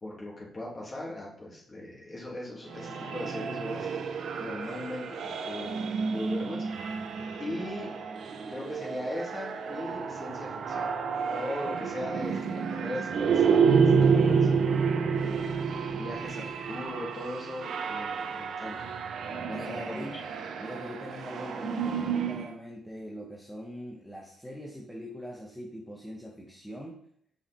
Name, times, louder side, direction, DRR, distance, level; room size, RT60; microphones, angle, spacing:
voice 1, 0.0-4.0 4.4-6.6 7.4-7.9 8.5-10.9 11.3-14.5 15.2-15.6 15.9-18.9 19.3-20.1, left 1 dB, 30° left, -3 dB, 2.6 m, -39 dB
sound 1, 2.7-22.5, right 6 dB, 60° right, 0.7 m, -29 dB
voice 2, 19.5-20.3 20.6-27.0, equal, 5° left, -2 dB, 1.1 m, -42 dB
5.8 x 5.4 x 4.3 m, 0.67 s
cardioid pair, 90°, 0 cm